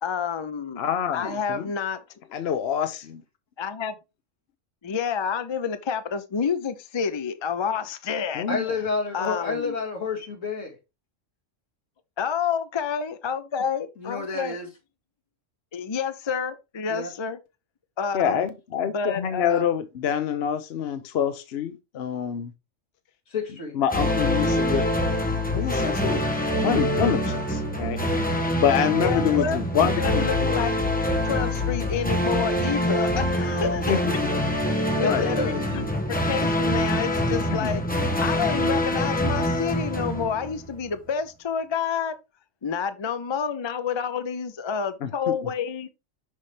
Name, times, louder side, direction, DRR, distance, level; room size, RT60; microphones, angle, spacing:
voice 1, 0.0-0.8 1.1-2.0 3.6-3.9 4.8-8.4 9.1-9.7 12.2-14.6 15.7-17.4 18.0-18.5 18.9-19.7 29.0-30.7 31.2-33.9 35.0-37.8 38.2-42.2 42.6-45.9, left 6 dB, 35° left, 0.4 m, -29 dB
voice 2, 0.8-1.7 2.3-3.2 8.3-8.7 18.1-22.5 23.7-25.1 25.5-26.2 26.6-28.0 28.6-30.6 33.9-34.1 35.0-35.6 37.5-37.7 45.0-45.5, left 8 dB, 60° left, 0.9 m, -26 dB
voice 3, 8.5-10.8 14.0-14.7 16.9-17.1 18.3-18.4 23.3-23.8 33.5-33.8 34.9-35.6, left 3 dB, 75° left, 2.1 m, -30 dB
sound 1, 23.9-40.9, left 1 dB, 10° left, 0.9 m, -25 dB
6.3 x 5.7 x 3.2 m
omnidirectional pair, 1.3 m